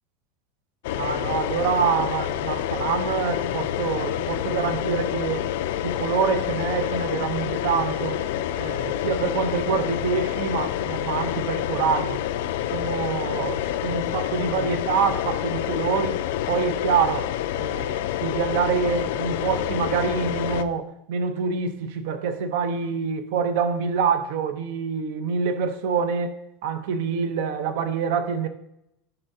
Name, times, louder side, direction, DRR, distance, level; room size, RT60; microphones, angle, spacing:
sound 1, 0.8-20.6, left 11 dB, 75° left, 0.4 m, -28 dB
voice 1, 0.9-5.5 5.8-8.2 8.6-12.2 12.7-16.2 16.5-28.5, right 6 dB, 65° right, 0.7 m, -26 dB
10.5 x 5.5 x 2.7 m
supercardioid pair, 160°, 0 cm